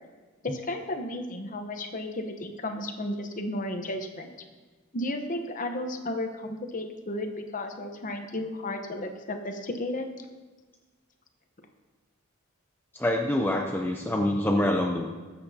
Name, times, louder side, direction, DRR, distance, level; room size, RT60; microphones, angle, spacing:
voice 1, 0.4-4.3 4.9-10.1, left 1 dB, 40° left, 5 dB, 1.0 m, -33 dB
voice 2, 12.9-15.1, left 1 dB, 10° left, 1 dB, 0.6 m, -25 dB
20.0 x 8.0 x 2.8 m, 1.3 s
head